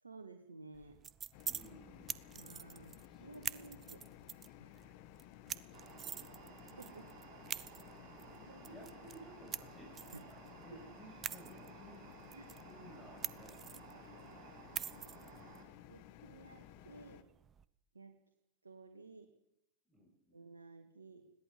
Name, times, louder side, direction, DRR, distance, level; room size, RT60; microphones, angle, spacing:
voice 1, 0.0-1.0 2.3-4.0 4.6-4.7 6.2-6.3 6.8-7.1 7.5-7.7 8.4-8.8 10.1-10.2 10.7-10.8 12.3-12.7 14.1-14.2 15.0-15.1 15.9-17.3 17.9-18.2 18.6-19.3 20.3-21.2, right 3 dB, 90° right, 5 dB, 2.1 m, -55 dB
sound 1, 0.7-17.6, right 8 dB, 30° right, 1.0 m, -48 dB
sound 2, 1.3-17.2, left 14 dB, 55° left, 1.5 m, -56 dB
voice 2, 1.5-2.3 2.7-4.0 5.6-6.0 8.2-10.4 10.6-12.1 12.6-14.1 19.9-20.4, right 1 dB, 5° left, -1 dB, 7.8 m, -58 dB
sound 3, 5.7-15.6, right 9 dB, 45° right, 5.6 m, -57 dB
21.0 x 17.5 x 7.9 m, 0.80 s
figure-of-eight pair, 95°, 0 cm